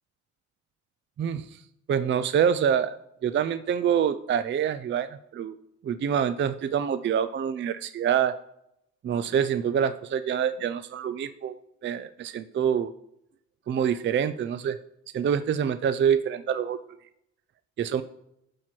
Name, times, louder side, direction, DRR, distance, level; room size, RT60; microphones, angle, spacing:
voice 1, 1.2-1.6 1.9-3.0 3.2-5.6 5.8-8.4 9.0-12.9 13.7-14.8 15.1-16.8 17.8-18.0, right 8 dB, 40° right, 12 dB, 0.4 m, -26 dB
12.0 x 4.7 x 4.4 m, 0.79 s
cardioid pair, 90°, 30 cm